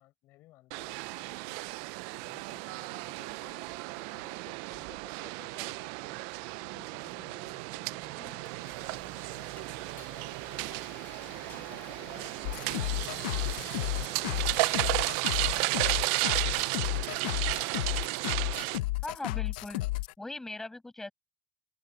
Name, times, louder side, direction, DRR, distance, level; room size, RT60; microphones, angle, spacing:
voice 1, 0.0-1.8 2.2-6.3 6.6-17.3, left 17 dB, 60° left, 7.7 m, -58 dB
sound 1, 0.7-18.8, right 26 dB, 75° right, 0.4 m, -34 dB
Frying (food), 8.0-15.0, left 10 dB, 45° left, 3.7 m, -53 dB
sound 2, 12.4-20.1, left 18 dB, 90° left, 0.8 m, -33 dB
voice 2, 19.0-19.8 20.2-21.1, left 2 dB, 10° left, 6.2 m, -40 dB
open air
supercardioid pair, 115°, 5 cm